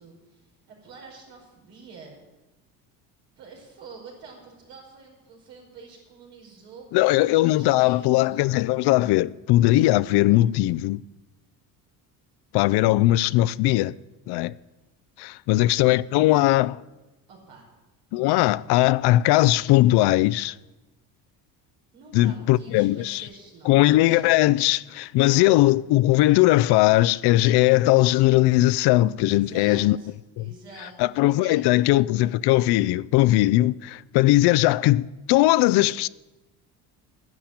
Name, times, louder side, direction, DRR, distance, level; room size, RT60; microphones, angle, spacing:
voice 1, 0.0-2.2 3.4-8.4 17.3-17.7 21.9-23.8 24.1-24.6 25.1-25.6 29.3-30.1 30.4-31.0 31.4-31.9, right 4 dB, 85° right, 5.1 m, -47 dB
voice 2, 6.9-11.0 12.5-13.9 14.3-14.5 15.2-16.8 18.1-20.5 22.1-23.2 23.7-30.0 30.4-30.5 31.0-36.1, left 17 dB, 70° left, 0.5 m, -19 dB
10.5 x 9.9 x 8.7 m
cardioid pair, 105°, 41 cm